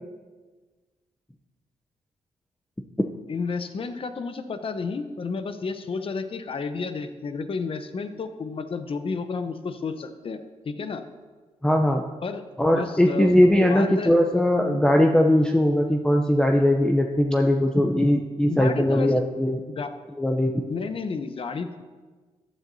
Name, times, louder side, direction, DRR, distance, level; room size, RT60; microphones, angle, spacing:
voice 1, 3.3-11.1 12.2-12.4 12.7-13.4 13.7-14.1 18.5-19.1 19.7-19.9 20.7-21.8, left 4 dB, 45° left, 9 dB, 0.8 m, -31 dB
voice 2, 11.6-12.0 12.6-19.6 20.2-20.6, left 1 dB, 5° left, 2 dB, 0.6 m, -20 dB
14.0 x 9.2 x 2.7 m, 1.4 s
cardioid pair, 85°, 13 cm